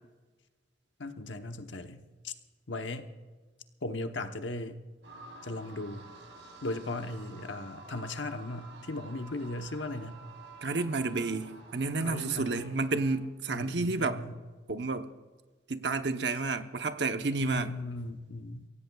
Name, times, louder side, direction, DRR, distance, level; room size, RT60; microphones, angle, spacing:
voice 1, 1.0-2.3 2.7-3.1 3.8-4.8 5.4-6.1 6.6-10.2 12.0-12.8 13.5-14.4 17.4-18.7, left 2 dB, 90° left, 1.0 m, -37 dB
sound 1, 5.0-13.2, right 3 dB, 90° right, 3.9 m, -50 dB
voice 2, 10.6-14.2 14.7-15.1 15.7-17.7, right 3 dB, 70° right, 0.9 m, -31 dB
24.0 x 16.5 x 2.4 m
head